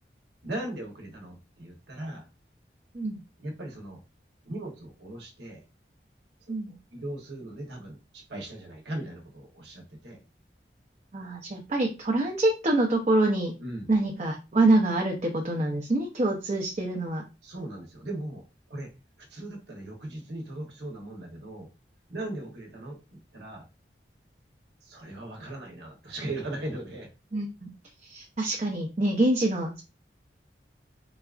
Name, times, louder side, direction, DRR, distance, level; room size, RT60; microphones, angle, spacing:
voice 1, 0.4-2.3 3.4-4.0 4.4-5.6 6.4-10.2 13.6-13.8 17.4-18.9 19.3-21.7 22.1-23.6 24.8-27.1, right 1 dB, 75° right, 1 dB, 0.9 m, -38 dB
voice 2, 11.1-13.5 13.9-17.2 27.3-27.7 28.0-29.8, right 2 dB, 40° right, 0 dB, 0.5 m, -25 dB
4.0 x 2.4 x 2.4 m, 0.28 s
head